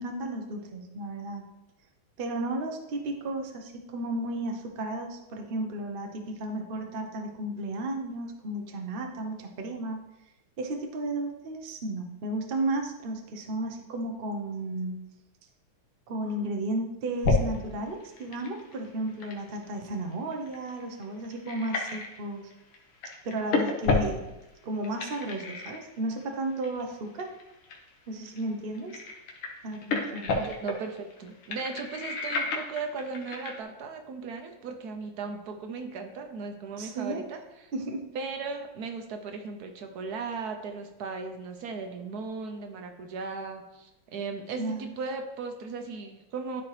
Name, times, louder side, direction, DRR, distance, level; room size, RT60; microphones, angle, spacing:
voice 1, 0.0-1.5 2.2-10.0 10.6-15.0 16.1-22.5 23.2-24.2 24.6-27.3 28.1-29.0 29.6-30.5 36.8-37.2 37.7-38.0 44.6-44.9, right 1 dB, 90° right, 3 dB, 0.4 m, -33 dB
sound 1, 17.2-17.6 17.9-22.2 22.5-22.8 23.0-24.4 24.8-26.2 26.6-26.8 27.2-27.9 28.2-28.4 28.7-33.6, left 3 dB, 80° left, 2.0 m, -30 dB
voice 2, 30.3-37.7 38.1-46.6, right 4 dB, 65° right, 5 dB, 1.0 m, -37 dB
12.5 x 4.4 x 3.2 m, 0.96 s
omnidirectional pair, 2.3 m